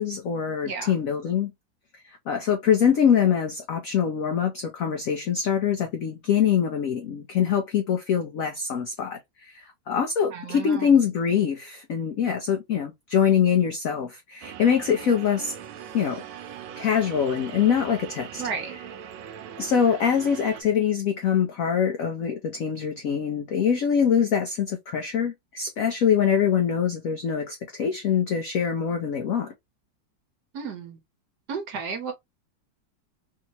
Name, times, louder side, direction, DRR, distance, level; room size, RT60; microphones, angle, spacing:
voice 1, 0.0-1.5 2.0-15.5 15.9-16.2 16.8-18.4 19.6-29.5, left 8 dB, 75° left, 0.7 m, -24 dB
voice 2, 10.3-10.9 18.4-18.8 30.5-31.0 31.5-32.1, right 5 dB, 60° right, 1.3 m, -33 dB
sound 1, 14.4-20.6, right 9 dB, 85° right, 1.4 m, -40 dB
3.5 x 2.8 x 2.8 m
omnidirectional pair, 2.2 m